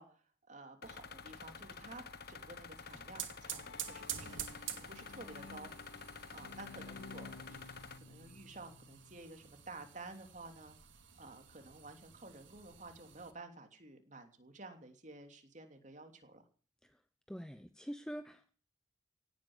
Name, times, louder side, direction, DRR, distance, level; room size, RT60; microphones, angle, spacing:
voice 1, 0.0-2.0 2.3-4.3 4.7-5.7 6.3-10.8 11.2-16.4, right 2 dB, 40° right, 6 dB, 3.0 m, -52 dB
sound 1, 0.8-8.0, left 5 dB, 55° left, 1.5 m, -50 dB
sound 2, 2.7-13.3, right 10 dB, 90° right, 2.5 m, -49 dB
Bowed string instrument, 3.3-9.2, left 4 dB, 85° left, 0.9 m, -54 dB
voice 2, 17.3-18.5, equal, 5° left, 9 dB, 0.8 m, -45 dB
17.5 x 9.2 x 8.1 m, 0.41 s
head